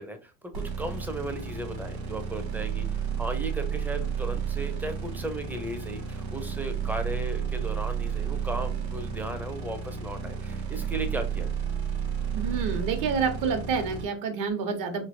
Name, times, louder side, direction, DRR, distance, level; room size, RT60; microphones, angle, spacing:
voice 1, 0.0-11.5, right 1 dB, 5° right, 6 dB, 0.5 m, -36 dB
sound 1, 0.5-14.0, right 7 dB, 90° right, 1.2 m, -32 dB
voice 2, 12.3-15.0, right 5 dB, 60° right, 6 dB, 0.9 m, -28 dB
3.1 x 2.7 x 2.6 m, 0.32 s
cardioid pair, 125°, 36 cm